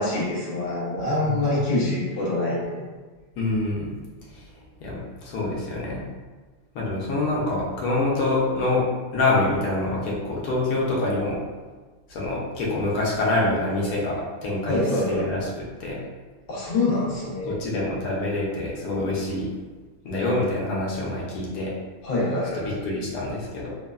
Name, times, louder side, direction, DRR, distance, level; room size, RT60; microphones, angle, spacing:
voice 1, 0.0-2.8 14.7-15.3 16.5-17.6 22.0-22.8, left 2 dB, 45° left, -7 dB, 0.8 m, -25 dB
voice 2, 3.4-4.0 4.3-4.4 4.8-6.0 6.7-8.8 9.1-11.4 12.1-14.8 15.1-15.4 15.8-16.0 17.5-19.5 20.0-21.7 22.8-23.7, left 2 dB, 80° left, -4 dB, 1.1 m, -26 dB
3.0 x 2.0 x 2.2 m, 1.3 s
omnidirectional pair, 1.6 m